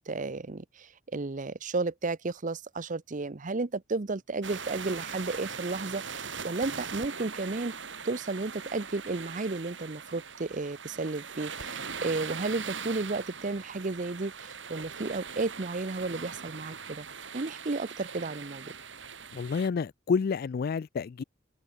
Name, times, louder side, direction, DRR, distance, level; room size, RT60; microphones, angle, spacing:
voice 1, 0.1-7.7 8.0-17.1 17.3-18.7, right 3 dB, 40° right, 0.8 m, -33 dB
sound 1, 4.4-19.7, right 6 dB, 70° right, 4.1 m, -41 dB
voice 2, 19.3-21.2, left 5 dB, 50° left, 0.3 m, -29 dB
head